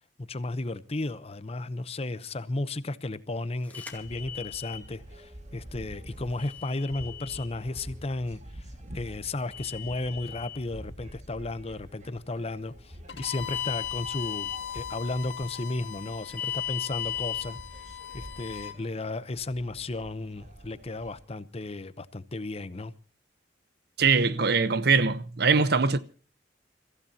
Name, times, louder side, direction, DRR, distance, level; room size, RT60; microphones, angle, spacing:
voice 1, 0.2-17.6 18.1-22.9, left 2 dB, 35° left, 0.8 m, -34 dB
sound 1, 3.7-4.8 6.4-7.5 9.5-10.6 13.4-14.6 16.4-17.4, left 11 dB, 10° left, 2.2 m, -36 dB
sound 2, 3.9-21.2, equal, 40° right, 1.9 m, -47 dB
Bowed string instrument, 13.1-18.8, left 10 dB, 80° left, 1.7 m, -40 dB
voice 2, 24.0-26.0, right 4 dB, 60° right, 0.9 m, -22 dB
29.0 x 15.0 x 2.8 m
head